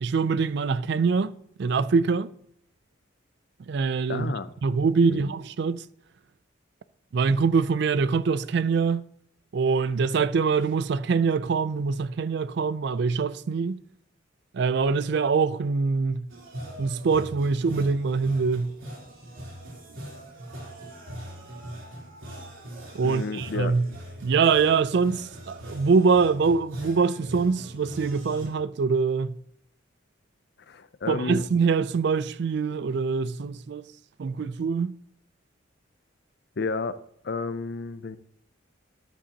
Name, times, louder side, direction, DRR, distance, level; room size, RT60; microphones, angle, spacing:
voice 1, 0.0-2.3 3.7-4.3 4.6-5.8 7.1-9.0 9.5-13.8 14.5-16.3 16.8-18.7 22.9-23.8 24.2-29.3 31.1-33.8 34.2-34.9, right 5 dB, 55° right, 0.4 m, -24 dB
voice 2, 4.1-4.5 5.1-5.3 23.0-23.8 30.7-31.4 36.6-37.0 37.2-38.2, left 4 dB, 55° left, 0.5 m, -31 dB
sound 1, 16.3-28.5, equal, 80° right, 3.4 m, -41 dB
13.5 x 10.0 x 2.8 m
head